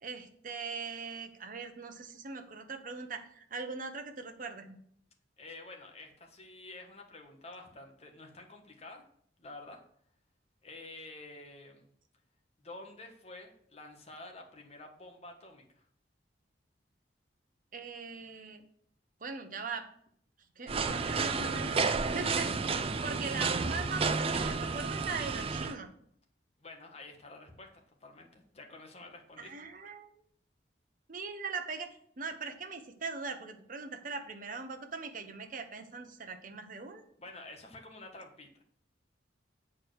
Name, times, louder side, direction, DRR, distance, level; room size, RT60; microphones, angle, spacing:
voice 1, 0.0-4.8 17.7-18.6 19.2-19.9 20.6-22.6 23.0-25.9 29.4-30.1 31.1-37.0, right 4 dB, 45° right, 7 dB, 0.9 m, -40 dB
voice 2, 5.4-9.0 9.4-9.8 10.6-11.8 12.6-15.8 26.6-27.7 28.0-29.5 37.2-38.6, left 2 dB, 35° left, 2 dB, 1.4 m, -49 dB
sound 1, 20.7-25.8, right 4 dB, 30° right, 0.5 m, -31 dB
8.2 x 4.6 x 6.4 m, 0.65 s
head